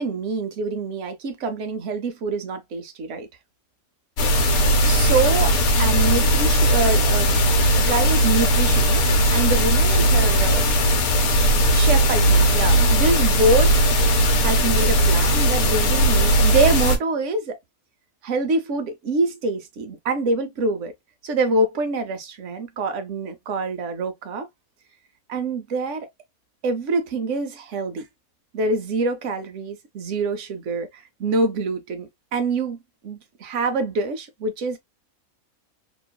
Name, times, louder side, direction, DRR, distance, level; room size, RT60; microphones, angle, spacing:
voice 1, 0.0-3.3 4.8-7.4 7.7-10.7 11.7-13.7 14.4-17.6 18.2-20.9 21.2-24.5 25.3-26.1 26.6-28.1 28.5-32.8 33.0-34.8, right 3 dB, 65° right, 0.9 m, -25 dB
sound 1, 4.2-17.0, right 1 dB, 80° left, 1.2 m, -18 dB
3.0 x 2.3 x 2.2 m
omnidirectional pair, 1.5 m